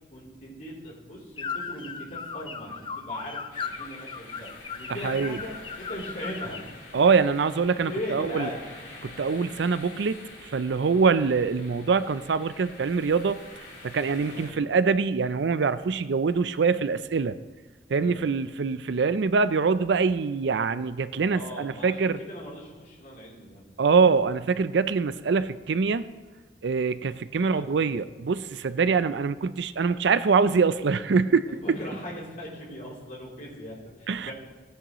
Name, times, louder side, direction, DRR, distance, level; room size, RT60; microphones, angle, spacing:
voice 1, 0.1-4.5 4.8-6.6 7.9-8.6 14.3-14.7 18.0-18.3 21.2-23.9 27.4-27.9 31.5-34.3, equal, 45° left, -4 dB, 3.3 m, -39 dB
sound 1, 1.4-6.7, left 5 dB, 25° left, 0.4 m, -37 dB
sound 2, 3.5-14.5, left 2 dB, 75° left, 3.5 m, -46 dB
voice 2, 5.0-5.4 6.9-8.5 9.0-13.4 13.8-17.4 17.9-22.2 23.8-26.1 26.6-31.5 34.1-34.3, right 5 dB, 75° right, 14 dB, 0.4 m, -24 dB
17.5 x 10.0 x 3.0 m, 1.3 s
head